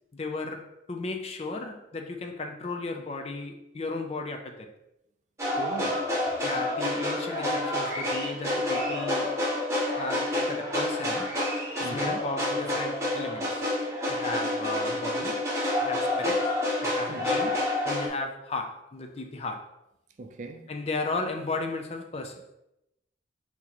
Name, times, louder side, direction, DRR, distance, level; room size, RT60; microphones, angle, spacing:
voice 1, 0.1-4.7 6.4-9.4 10.0-11.3 11.8-13.6 14.1-15.4 15.8-16.5 16.8-17.6 17.8-19.7 20.7-22.4, left 3 dB, 35° left, 0.5 m, -35 dB
sound 1, 5.4-18.1, left 1 dB, 15° right, 1.1 m, -28 dB
voice 2, 5.6-6.1 11.8-12.3 17.1-17.3 20.2-20.7, right 3 dB, 40° right, 0.4 m, -39 dB
5.9 x 2.8 x 3.0 m
head